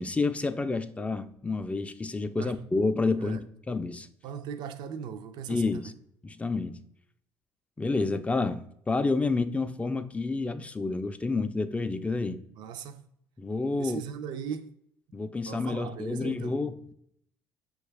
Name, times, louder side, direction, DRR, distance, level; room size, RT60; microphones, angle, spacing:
voice 1, 0.0-3.4 3.7-4.1 5.5-5.9 6.2-6.8 7.8-12.4 13.4-14.0 15.1-16.9, left 3 dB, 15° left, 0.3 m, -29 dB
voice 2, 4.2-5.9 12.5-13.0 13.8-14.7 15.5-16.6, right 7 dB, 65° right, 0.4 m, -38 dB
6.0 x 2.3 x 3.3 m
hypercardioid pair, 65°, 8 cm